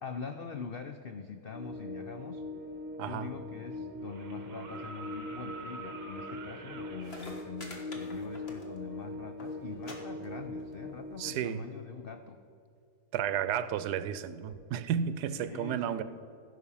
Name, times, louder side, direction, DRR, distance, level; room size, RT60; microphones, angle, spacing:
voice 1, 0.0-2.4 3.0-12.4 15.3-16.0, left 5 dB, 80° left, 7 dB, 0.5 m, -43 dB
sound 1, 1.5-11.5, left 1 dB, 10° right, 0.6 m, -42 dB
sound 2, 2.9-3.0 4.1-7.3 9.0-9.1, right 4 dB, 45° right, 1.0 m, -46 dB
voice 2, 3.0-3.3 11.2-11.7 13.1-16.0, right 9 dB, 80° right, 14 dB, 1.1 m, -32 dB
sound 3, 6.7-6.8 7.0-9.0 9.2-9.5 9.8-10.0 10.2-10.7 11.6-11.7, left 2 dB, 40° left, 1.7 m, -46 dB
16.0 x 6.1 x 5.6 m, 2.5 s
omnidirectional pair, 1.7 m